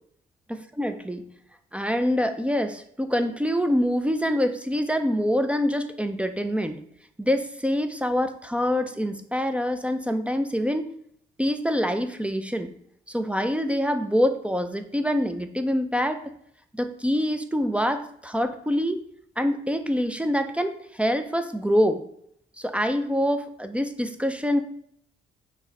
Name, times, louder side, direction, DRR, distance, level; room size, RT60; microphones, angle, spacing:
voice 1, 0.5-1.2 1.7-6.8 7.2-10.9 11.4-12.7 13.1-16.3 16.7-19.0 19.4-22.0 22.6-24.6, equal, 5° right, 8 dB, 0.4 m, -25 dB
5.9 x 2.7 x 3.2 m, 0.67 s
cardioid pair, 90°, 20 cm